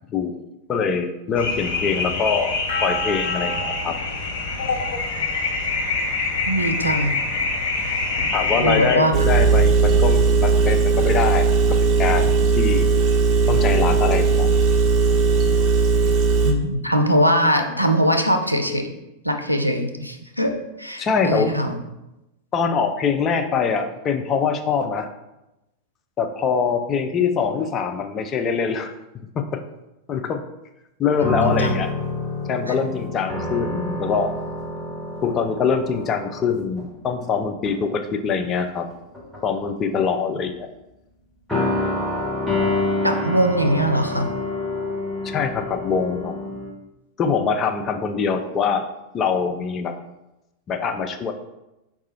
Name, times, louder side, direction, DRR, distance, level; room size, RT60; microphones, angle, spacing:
voice 1, 0.1-0.4 0.7-2.6 2.8-3.9 8.3-11.5 11.8-12.3 12.6-12.9 13.5-14.5 21.0-21.5 22.5-25.1 26.2-28.9 29.4-29.6 30.1-30.4 31.0-31.9 32.5-34.3 35.2-38.9 39.4-40.7 45.2-46.3 47.2-48.9 49.1-49.9 50.7-51.3, left 6 dB, 25° left, 6 dB, 0.4 m, -23 dB
sound 1, 1.4-9.0, left 3 dB, 50° left, 0.9 m, -25 dB
voice 2, 6.5-7.2 8.6-9.3 16.4-18.9 19.2-21.8 31.2-31.7 32.7-32.8 43.0-44.3, equal, 90° right, 4 dB, 0.4 m, -21 dB
Engine, 9.1-16.5, right 4 dB, 35° right, 0.6 m, -17 dB
sound 2, 31.2-37.3 37.7-37.9 38.9-39.6 41.5-46.7, left 2 dB, ahead, 1.0 m, -27 dB
4.7 x 2.4 x 4.2 m, 0.94 s
figure-of-eight pair, 90°, 0 cm